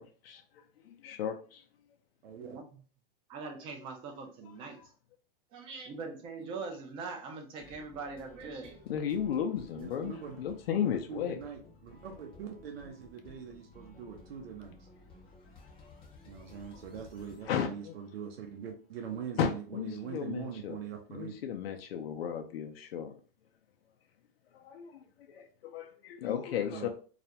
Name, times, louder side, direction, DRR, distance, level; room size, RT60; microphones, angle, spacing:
voice 1, 0.0-1.6 4.8-4.9 7.6-7.7 8.9-11.4 17.5-18.0 19.4-20.8 21.1-23.2 24.5-26.9, left 8 dB, 85° left, 0.5 m, -35 dB
voice 2, 2.2-2.6 9.8-10.5 10.8-14.9 16.2-21.3 26.7-26.9, right 7 dB, 90° right, 0.6 m, -43 dB
voice 3, 3.3-4.8 5.5-8.9 25.4-25.5, right 4 dB, 20° right, 0.3 m, -42 dB
sound 1, 7.6-18.7, left 3 dB, 20° left, 0.6 m, -56 dB
2.4 x 2.1 x 2.8 m
hypercardioid pair, 145°, 29 cm